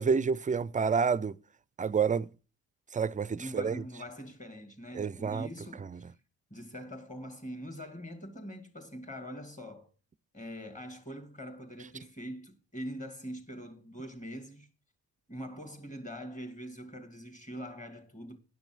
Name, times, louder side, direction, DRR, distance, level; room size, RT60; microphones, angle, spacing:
voice 1, 0.0-1.4 1.8-2.3 2.9-3.8 4.9-5.5 5.8-6.0, right 6 dB, 20° right, 0.4 m, -29 dB
voice 2, 3.4-6.2 6.5-9.9 10.3-14.7 15.3-18.4, equal, 20° left, 2.6 m, -43 dB
11.0 x 6.0 x 6.1 m
supercardioid pair, 55°, 37 cm